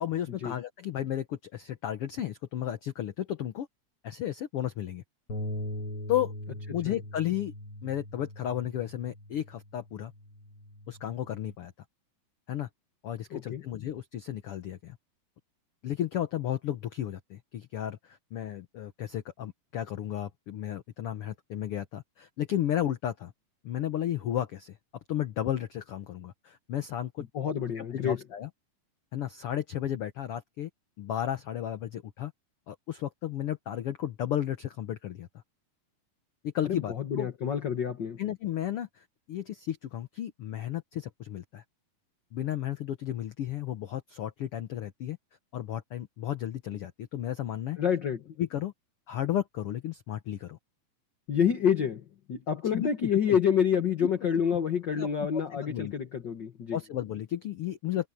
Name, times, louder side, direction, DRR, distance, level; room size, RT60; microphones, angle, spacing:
voice 1, 0.0-3.7 4.0-5.0 6.1-6.3 6.7-7.5 7.8-10.1 10.9-11.7 12.5-12.7 13.0-15.0 15.8-23.3 23.6-24.8 25.1-27.2 27.7-28.5 29.1-30.7 31.0-32.3 32.7-35.3 36.4-37.3 38.2-41.6 42.3-45.2 45.5-47.8 48.4-48.7 49.1-50.6 52.6-53.4 54.0-54.1 55.0-55.1 55.6-55.9 56.7-58.1, left 11 dB, 85° left, 1.2 m, -33 dB
sound 1, 5.3-11.5, left 1 dB, 40° left, 5.6 m, -41 dB
voice 2, 13.3-13.6 27.3-28.2 36.6-38.2 47.8-48.2 51.3-56.8, left 8 dB, 55° left, 1.2 m, -28 dB
omnidirectional pair, 4.0 m